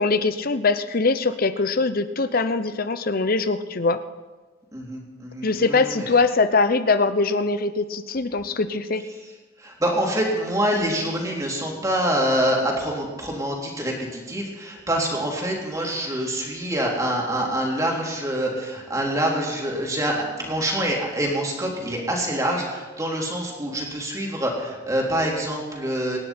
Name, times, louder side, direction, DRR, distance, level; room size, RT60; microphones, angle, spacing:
voice 1, 0.0-4.0 5.4-9.0, left 3 dB, 50° left, 12 dB, 0.8 m, -22 dB
voice 2, 4.7-6.1 9.6-26.2, right 1 dB, 20° right, -2 dB, 3.3 m, -26 dB
25.5 x 10.5 x 4.4 m, 1.3 s
head